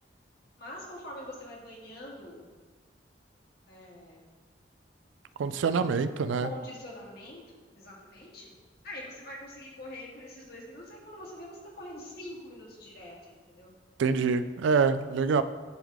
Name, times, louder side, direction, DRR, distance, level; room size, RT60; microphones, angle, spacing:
voice 1, 0.6-2.5 3.7-4.3 6.4-7.4 7.7-8.6 8.8-13.7, left 1 dB, 55° left, -3 dB, 1.7 m, -44 dB
voice 2, 5.4-6.5 14.0-15.4, right 5 dB, 90° right, 12 dB, 0.3 m, -25 dB
10.0 x 3.6 x 3.6 m, 1.3 s
head